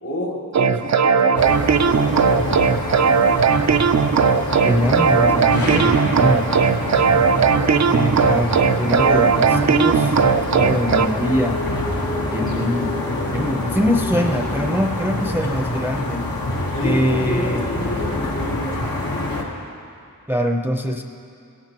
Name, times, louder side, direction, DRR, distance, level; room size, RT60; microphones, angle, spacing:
voice 1, 0.0-2.8 16.7-19.0, left 1 dB, 60° left, -3 dB, 2.7 m, -30 dB
sound 1, 0.5-11.1, right 6 dB, 50° right, 0.4 m, -18 dB
sound 2, 1.4-19.4, left 2 dB, 80° left, 1.5 m, -26 dB
voice 2, 4.6-6.6 7.3-10.2 10.5-11.6 12.3-12.9 13.3-16.3 16.8-17.7 20.3-21.0, equal, 5° right, 3 dB, 0.6 m, -23 dB
16.5 x 14.0 x 3.0 m, 2.5 s
wide cardioid pair, 75°, 35 cm